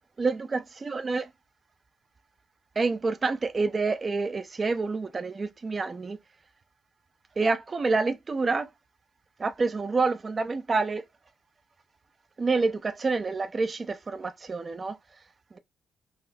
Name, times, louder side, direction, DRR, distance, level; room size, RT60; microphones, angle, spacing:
voice 1, 0.2-1.3 2.8-6.2 7.4-8.7 9.4-11.0 12.4-15.0 15.5-15.6, right 4 dB, 30° right, 0.5 m, -28 dB
4.0 x 2.0 x 2.6 m
cardioid pair, 90°, 0 cm